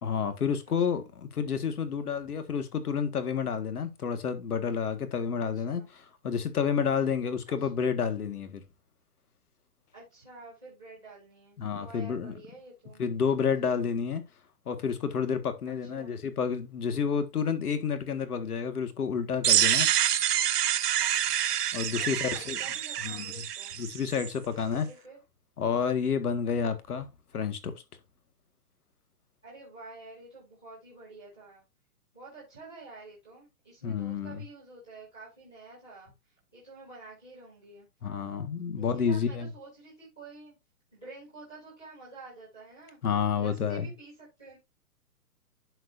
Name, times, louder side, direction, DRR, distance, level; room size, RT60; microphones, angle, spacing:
voice 1, 0.0-5.8 6.2-8.6 11.6-12.3 13.0-14.2 14.7-19.9 21.7-22.6 23.0-23.3 23.8-24.9 25.6-27.1 27.3-27.7 33.8-34.4 38.0-39.5 43.0-43.9, left 6 dB, 75° left, 1.8 m, -29 dB
voice 2, 0.7-1.1 5.4-5.9 7.5-7.9 9.9-13.0 13.6-13.7 15.6-16.2 22.0-23.7 24.6-25.2 29.4-31.6 32.1-36.1 36.5-37.9 38.8-40.5 40.9-43.0 43.4-44.6, right 3 dB, 5° left, 0.6 m, -49 dB
sound 1, 19.4-24.3, right 10 dB, 90° right, 0.8 m, -27 dB
11.0 x 4.7 x 2.6 m
hypercardioid pair, 180°, 45 cm